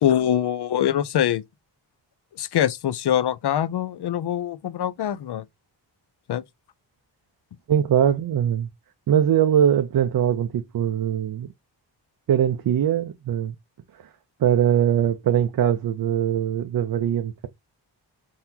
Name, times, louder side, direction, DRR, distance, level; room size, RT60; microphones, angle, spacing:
voice 1, 0.0-1.4 2.4-5.4 6.3-6.4, left 10 dB, 60° left, 0.5 m, -23 dB
voice 2, 7.7-8.7 9.1-11.5 12.3-13.5 14.4-17.5, right 9 dB, 55° right, 0.5 m, -21 dB
3.9 x 2.8 x 2.7 m
wide cardioid pair, 100°, 45 cm